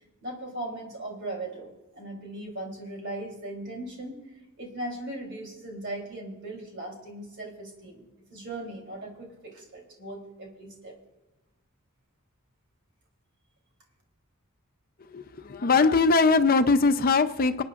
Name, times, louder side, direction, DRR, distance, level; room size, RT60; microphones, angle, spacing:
voice 1, 0.2-4.2 4.6-8.0 8.3-11.0, right 1 dB, 55° right, 0 dB, 3.3 m, -38 dB
voice 2, 15.1-17.6, left 4 dB, 45° left, 10 dB, 0.6 m, -21 dB
27.5 x 9.2 x 2.5 m, 1.0 s
head